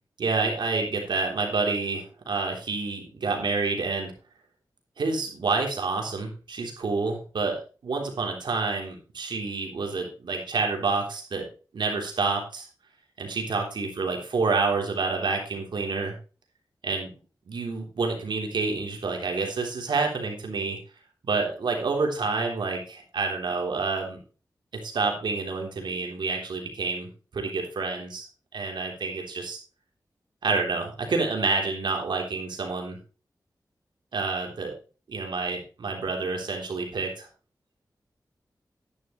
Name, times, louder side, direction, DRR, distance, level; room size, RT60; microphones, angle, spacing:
voice 1, 0.2-4.1 5.0-11.4 11.7-12.7 13.2-16.2 16.8-17.1 17.5-20.8 21.2-24.2 24.8-27.1 27.3-28.3 28.5-29.6 30.4-33.0 34.1-34.7 35.1-37.3, right 4 dB, 90° right, 2 dB, 3.5 m, -28 dB
11.5 x 10.5 x 3.2 m, 0.35 s
wide cardioid pair, 100°, 8 cm